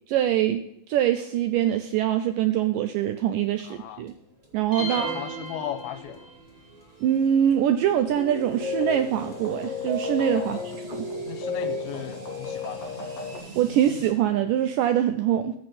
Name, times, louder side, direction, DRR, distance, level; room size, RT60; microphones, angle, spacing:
voice 1, 0.1-0.6 0.9-4.1 4.5-5.1 7.0-11.0 13.6-15.6, right 10 dB, 85° right, 8 dB, 1.9 m, -24 dB
sound 1, 3.3-14.1, right 2 dB, 25° right, 1.3 m, -47 dB
voice 2, 3.6-4.0 4.8-6.3 10.4-10.7 11.3-13.0, left 11 dB, 80° left, 11 dB, 2.5 m, -37 dB
sound 2, 4.7-6.5, equal, 25° left, 5.0 m, -35 dB
sound 3, 8.1-13.4, left 3 dB, 45° left, 3.6 m, -32 dB
14.5 x 6.6 x 4.2 m, 0.76 s
omnidirectional pair, 4.4 m